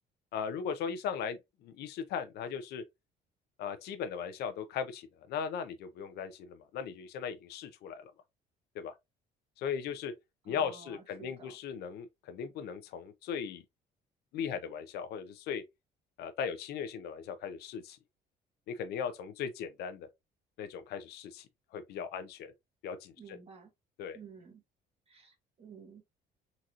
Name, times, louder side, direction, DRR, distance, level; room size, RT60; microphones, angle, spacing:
voice 1, 0.3-2.8 3.6-8.1 8.7-8.9 9.6-10.1 10.5-13.6 14.3-15.6 16.2-18.0 18.7-20.1 20.6-21.5 21.7-22.5 22.8-23.4 24.0-24.2, left 7 dB, 75° left, 0.6 m, -38 dB
voice 2, 10.5-11.6 23.2-23.7 24.1-24.6 25.1-26.0, right 5 dB, 35° right, 1.5 m, -52 dB
3.9 x 2.9 x 2.4 m
cardioid pair, 110°, 17 cm